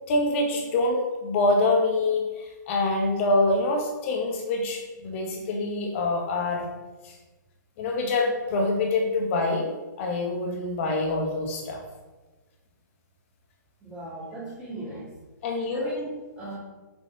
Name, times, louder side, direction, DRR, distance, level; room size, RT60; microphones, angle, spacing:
voice 1, 0.1-6.7 7.0-7.1 7.8-11.8 15.4-15.9, left 2 dB, 40° left, 1 dB, 2.1 m, -25 dB
voice 2, 13.8-15.1 15.7-16.6, right 2 dB, 10° right, -10 dB, 2.6 m, -38 dB
7.8 x 7.0 x 4.2 m, 1.2 s
hypercardioid pair, 145°, 10 cm